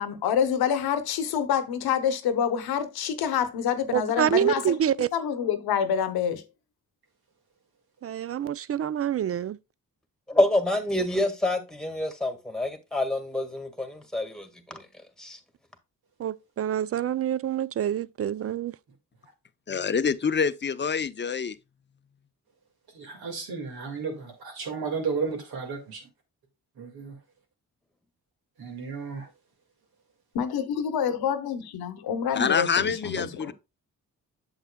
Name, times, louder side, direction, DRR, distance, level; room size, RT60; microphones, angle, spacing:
voice 1, 0.0-4.6 5.1-6.4 30.3-33.5, left 8 dB, 90° left, 0.9 m, -27 dB
voice 2, 3.9-5.1 8.0-9.6 16.2-18.8, right 10 dB, 40° right, 0.4 m, -27 dB
voice 3, 10.3-14.9 15.2-15.4, left 1 dB, ahead, 1.7 m, -27 dB
voice 4, 19.7-21.6 32.3-33.5, left 6 dB, 30° left, 0.6 m, -26 dB
voice 5, 22.9-26.0 26.8-27.2 28.6-29.3, right 5 dB, 80° right, 2.0 m, -33 dB
8.0 x 7.2 x 2.2 m
cardioid pair, 55°, 36 cm